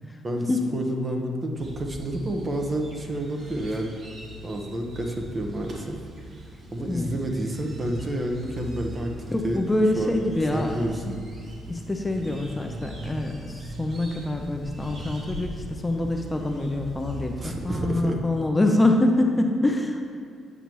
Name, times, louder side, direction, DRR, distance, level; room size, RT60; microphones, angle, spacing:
voice 1, 0.2-4.0 4.4-6.0 6.7-9.6 10.0-10.2 10.5-11.2 17.4-18.2, right 1 dB, 30° right, 2 dB, 1.1 m, -29 dB
sound 1, 1.5-17.9, right 1 dB, 55° right, 1.7 m, -40 dB
voice 2, 9.3-10.7 11.7-20.1, left 1 dB, 15° left, 3 dB, 0.7 m, -25 dB
8.4 x 6.9 x 3.1 m, 2.3 s
cardioid pair, 90°, 0 cm